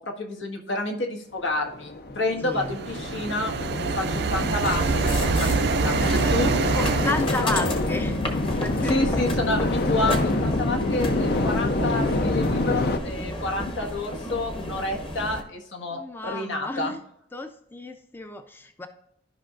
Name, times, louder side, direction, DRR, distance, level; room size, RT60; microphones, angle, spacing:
voice 1, 0.0-6.0 6.3-6.5 8.9-16.9, left 2 dB, 80° left, 2 dB, 1.5 m, -29 dB
sound 1, 1.5-13.0, left 2 dB, 55° left, 0.6 m, -27 dB
voice 2, 2.4-2.8 5.8-6.4 6.7-8.3 8.6-9.4 15.9-17.0 17.3-18.9, left 2 dB, 10° left, 6 dB, 0.5 m, -32 dB
sound 2, 2.6-7.3, right 5 dB, 60° right, 0.4 m, -25 dB
sound 3, 4.6-15.4, left 1 dB, 30° left, 1.0 m, -32 dB
13.5 x 5.4 x 2.5 m, 0.75 s
head